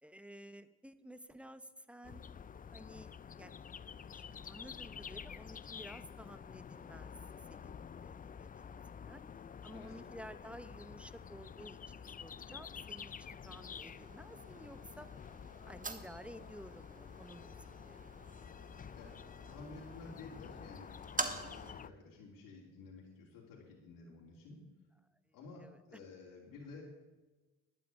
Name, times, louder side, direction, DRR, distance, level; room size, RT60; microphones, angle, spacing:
voice 1, 0.0-2.3 2.7-3.7 4.1-7.1 7.5-8.8 9.1-9.2 9.6-15.1 15.7-18.1 25.6-25.8, equal, 5° right, 12 dB, 1.0 m, -53 dB
sound 1, 2.0-21.9, left 7 dB, 25° left, 0.4 m, -50 dB
sound 2, 13.5-21.7, right 3 dB, 25° right, 1.5 m, -46 dB
voice 2, 19.4-20.9 21.2-24.6 25.3-26.8, left 3 dB, 85° left, -3 dB, 3.2 m, -52 dB
11.5 x 9.0 x 9.0 m, 1.2 s
cardioid pair, 80°, 33 cm